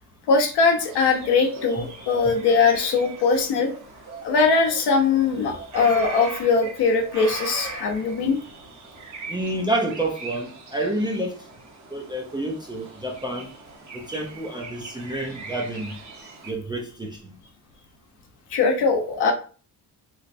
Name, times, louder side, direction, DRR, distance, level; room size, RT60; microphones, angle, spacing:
voice 1, 0.3-3.7 4.2-8.4 18.5-19.3, left 4 dB, 70° left, 0.9 m, -21 dB
sound 1, 0.8-16.5, right 3 dB, 45° right, 1.0 m, -40 dB
voice 2, 9.3-11.4 11.9-13.5 13.9-15.9 16.5-17.4, right 1 dB, 10° right, 0.5 m, -29 dB
3.1 x 3.1 x 2.6 m
cardioid pair, 135°, 41 cm